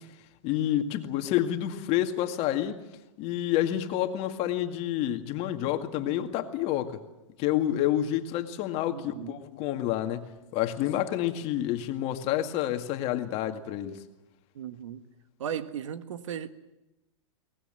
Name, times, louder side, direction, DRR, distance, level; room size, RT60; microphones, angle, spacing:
voice 1, 0.4-2.8 3.2-7.0 7.4-14.0, left 12 dB, 40° left, 2.1 m, -29 dB
voice 2, 8.9-9.4 14.5-15.0 15.4-16.5, right 9 dB, 75° right, 1.6 m, -36 dB
23.0 x 19.5 x 9.0 m
hypercardioid pair, 130°, 16 cm